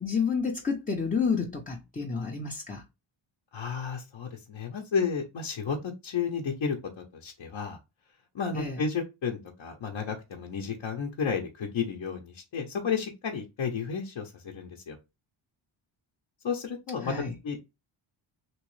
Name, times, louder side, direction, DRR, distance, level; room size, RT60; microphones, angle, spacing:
voice 1, 0.0-2.8 8.5-8.8 17.0-17.3, left 5 dB, 20° left, 0.5 m, -30 dB
voice 2, 3.5-7.8 8.3-15.0 16.4-17.1 17.4-17.6, left 6 dB, 60° left, 0.8 m, -32 dB
3.0 x 3.0 x 3.1 m
wide cardioid pair, 125°, 49 cm